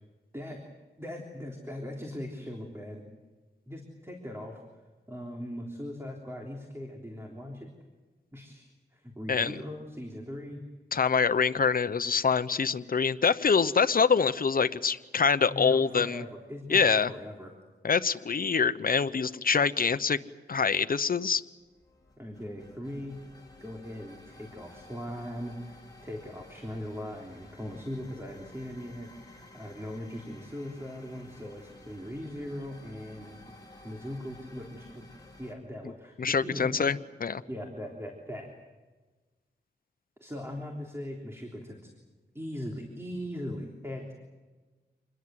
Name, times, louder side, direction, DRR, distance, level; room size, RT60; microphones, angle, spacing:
voice 1, 1.0-3.0 3.7-4.6 5.1-7.7 8.3-10.6 15.5-17.5 22.2-23.2 23.6-33.3 33.8-35.0 35.4-36.9 37.5-38.5 40.2-41.9 42.3-44.1, left 1 dB, 15° right, 0 dB, 3.6 m, -40 dB
voice 2, 10.9-16.2 16.7-17.1 17.8-20.2 20.5-21.4 36.2-37.4, left 5 dB, 55° left, 12 dB, 0.9 m, -25 dB
sound 1, 21.6-35.5, left 2 dB, 20° left, 5.6 m, -53 dB
27.0 x 21.0 x 7.8 m, 1.3 s
wide cardioid pair, 85°, 17 cm